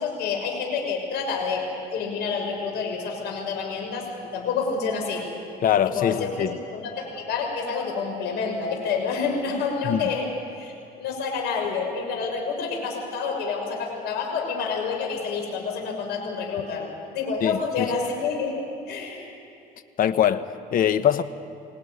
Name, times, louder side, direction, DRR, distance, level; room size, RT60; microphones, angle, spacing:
voice 1, 0.0-1.6 1.9-4.0 4.3-5.2 5.8-6.3 6.7-10.3 10.6-18.5 18.9-19.3, left 5 dB, 80° left, 1 dB, 6.2 m, -28 dB
voice 2, 5.6-6.6 9.8-10.0 17.4-17.9 20.0-21.2, left 9 dB, 55° left, 11 dB, 1.2 m, -23 dB
25.0 x 18.5 x 9.7 m, 2.6 s
cardioid pair, 110°, 17 cm